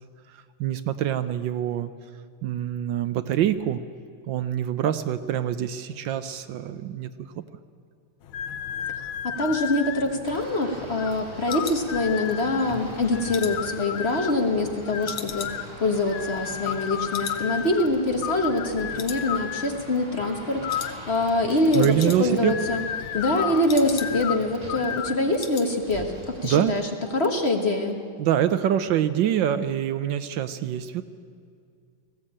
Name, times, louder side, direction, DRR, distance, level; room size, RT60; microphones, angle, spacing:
voice 1, 0.3-1.9 2.4-3.8 4.3-7.3 21.7-22.5 26.4-26.7 28.2-31.0, right 10 dB, 70° right, 12 dB, 1.3 m, -25 dB
sound 1, 8.2-25.2, left 9 dB, 85° left, 1.6 m, -34 dB
voice 2, 8.9-22.8 23.1-26.8 27.1-27.9, left 2 dB, 35° left, 3 dB, 1.4 m, -25 dB
sound 2, 9.8-12.5 12.9-14.7 15.0-16.9 17.1-17.5 17.7-17.8 18.3-18.7 19.0-19.7 20.0-20.3 20.7-20.9 21.2-21.3 21.5-22.5 22.8-24.4 24.7-24.8 25.1-25.7 26.0-26.3 26.6-26.7, left 7 dB, 65° left, 1.8 m, -40 dB
sound 3, 10.2-26.5, equal, 15° right, 2.6 m, -44 dB
20.0 x 15.5 x 8.7 m, 2.3 s
omnidirectional pair, 2.2 m